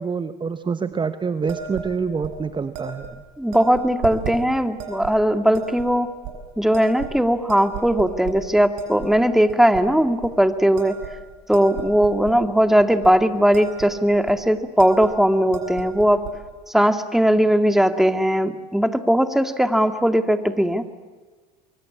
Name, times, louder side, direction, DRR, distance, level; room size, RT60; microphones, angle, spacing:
voice 1, 0.0-3.2, right 5 dB, 20° right, 11 dB, 1.1 m, -26 dB
sound 1, 1.5-1.9 2.2-2.4 2.7-3.1 3.5-4.4 4.8-5.1 5.5-5.9 6.2-6.3 6.7-7.2 7.5-8.4 8.8-9.1 9.5-9.8 10.2-10.4 10.8-12.4 12.8-13.1 13.4-13.9 14.1-14.4 14.8-15.1 15.4-16.3, right 7 dB, 65° right, 6.8 m, -34 dB
voice 2, 3.4-6.1 6.6-11.0 11.5-16.2 16.7-20.8, equal, ahead, 8 dB, 2.1 m, -19 dB
25.0 x 23.5 x 8.6 m, 1.4 s
hypercardioid pair, 80°, 21 cm